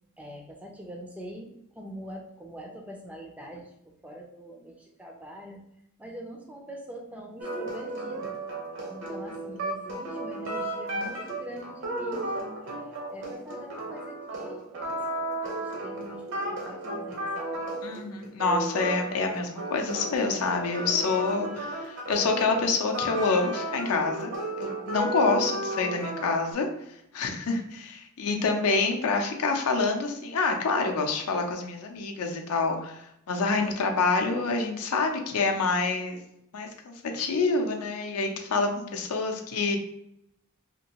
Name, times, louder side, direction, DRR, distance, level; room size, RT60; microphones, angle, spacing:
voice 1, 0.2-3.7 4.0-5.6 6.0-8.4 8.9-17.6 28.3-28.4, equal, 5° right, 1 dB, 0.4 m, -43 dB
sound 1, 7.4-26.5, right 1 dB, 60° right, 0.7 m, -34 dB
voice 2, 17.8-24.3 24.6-26.7 27.1-36.2 36.5-39.8, left 3 dB, 70° left, 3 dB, 0.5 m, -27 dB
2.9 x 2.6 x 2.8 m, 0.78 s
head